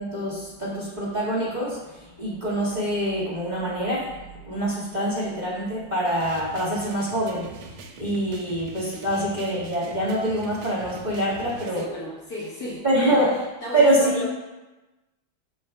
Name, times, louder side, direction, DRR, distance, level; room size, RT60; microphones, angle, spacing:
voice 1, 0.0-11.8 12.8-13.3 13.7-14.2, right 1 dB, 20° right, -9 dB, 2.2 m, -25 dB
sound 1, 6.2-11.8, right 3 dB, 75° right, 1.5 m, -43 dB
voice 2, 11.8-14.3, left 1 dB, 50° left, -8 dB, 2.3 m, -34 dB
12.5 x 5.1 x 2.4 m, 1.1 s
omnidirectional pair, 2.3 m